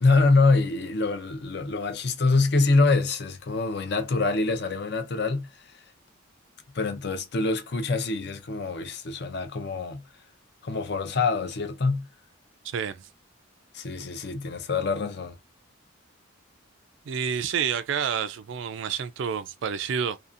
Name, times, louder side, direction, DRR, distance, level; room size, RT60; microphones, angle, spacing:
voice 1, 0.0-5.5 6.7-10.0 10.6-12.1 13.7-15.4, left 3 dB, 55° left, 0.5 m, -25 dB
voice 2, 17.1-20.2, right 7 dB, 65° right, 0.3 m, -29 dB
2.6 x 2.4 x 2.5 m
head